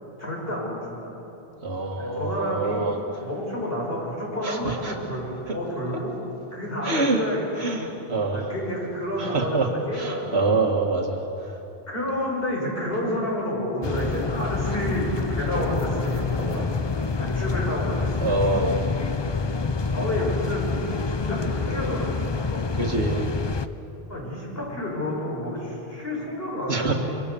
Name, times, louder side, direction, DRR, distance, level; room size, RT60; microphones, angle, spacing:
voice 1, 0.2-1.1 1.9-2.9 3.2-6.1 6.5-7.7 8.3-10.5 11.9-16.8 17.2-18.9 19.9-20.7 21.0-23.0 24.1-26.9, left 1 dB, 65° left, -3 dB, 6.1 m, -30 dB
voice 2, 1.6-3.0 4.4-5.0 5.5-5.6 6.8-7.2 7.6-8.4 9.2-9.7 9.9-11.5 16.6-16.7 18.2-18.7 22.8-23.2 26.7-26.9, right 3 dB, 85° right, 1 dB, 2.2 m, -25 dB
sound 1, 13.8-23.7, left 4 dB, 30° left, 0.7 m, -27 dB
26.0 x 24.0 x 7.0 m, 3.0 s
omnidirectional pair, 1.1 m